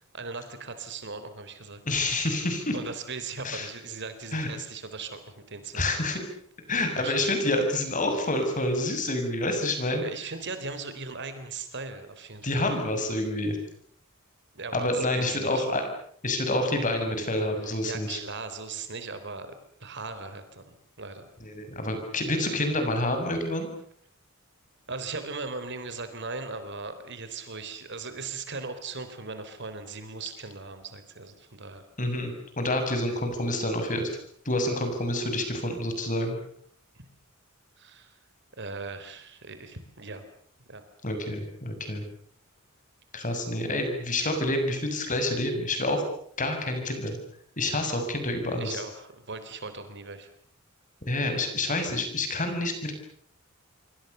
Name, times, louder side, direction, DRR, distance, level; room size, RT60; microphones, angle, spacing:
voice 1, 0.1-1.8 2.7-5.9 7.0-7.2 10.0-12.5 14.5-15.7 17.6-20.6 21.0-21.3 24.9-31.8 37.8-38.2 38.6-40.2 40.7-40.8 48.5-50.3, right 4 dB, 55° right, 10 dB, 3.9 m, -38 dB
voice 2, 1.9-2.8 3.4-3.7 4.3-4.5 5.7-6.2 6.7-10.0 12.4-13.6 14.7-15.8 16.2-18.2 21.4-23.7 32.0-34.1 34.5-36.4 41.0-42.0 43.1-46.1 46.4-47.2 47.6-48.8 51.1-52.9, left 1 dB, 40° left, 6 dB, 7.0 m, -28 dB
27.0 x 24.5 x 6.9 m, 0.62 s
head